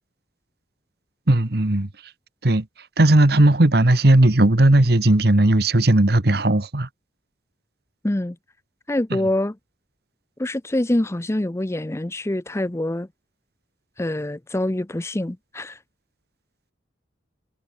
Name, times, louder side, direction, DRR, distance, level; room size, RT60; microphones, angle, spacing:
voice 1, 1.3-1.9 2.4-2.6 3.0-6.9 9.1-9.2, right 1 dB, 60° right, 1.5 m, -16 dB
voice 2, 8.0-8.4 8.9-9.6 10.4-13.1 14.0-15.8, left 1 dB, 15° left, 0.6 m, -25 dB
head